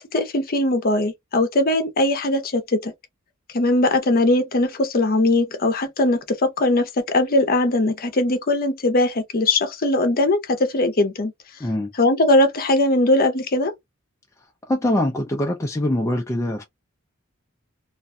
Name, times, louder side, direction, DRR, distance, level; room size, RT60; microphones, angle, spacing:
voice 1, 0.0-2.9 3.5-6.2 6.6-11.3 12.0-13.7, left 2 dB, 45° left, 0.7 m, -20 dB
voice 2, 14.7-16.6, left 1 dB, 15° left, 0.3 m, -23 dB
2.5 x 2.2 x 2.5 m
head